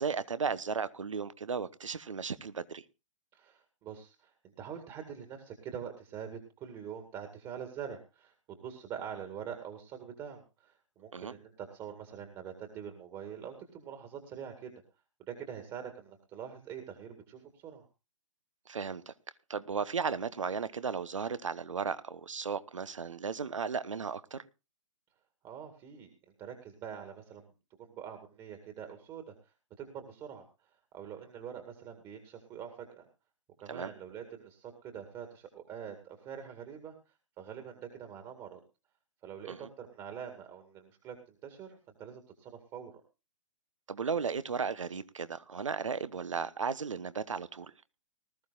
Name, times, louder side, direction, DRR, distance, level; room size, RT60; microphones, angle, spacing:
voice 1, 0.0-2.8 11.1-11.3 18.7-19.1 19.5-24.4 33.7-33.9 39.5-39.7 43.9-47.7, right 5 dB, 75° right, 1.0 m, -35 dB
voice 2, 3.3-14.8 15.2-17.9 25.4-26.1 26.4-27.5 27.8-33.1 33.6-38.6 39.2-43.0, right 8 dB, 25° right, 2.0 m, -45 dB
19.5 x 14.0 x 2.5 m
figure-of-eight pair, 120°, 17 cm